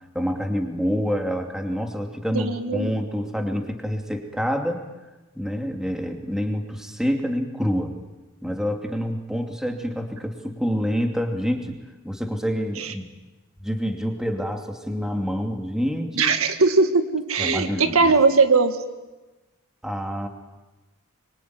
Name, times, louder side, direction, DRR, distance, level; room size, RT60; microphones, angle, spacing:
voice 1, 0.1-4.8 5.3-7.9 8.4-11.8 12.0-13.1 13.6-16.3 17.4-18.1 19.8-20.3, equal, 5° right, 3 dB, 2.6 m, -27 dB
voice 2, 2.3-2.9 12.8-12.9 16.2-18.8, right 4 dB, 85° right, 8 dB, 1.9 m, -20 dB
25.0 x 24.0 x 9.5 m, 1.1 s
head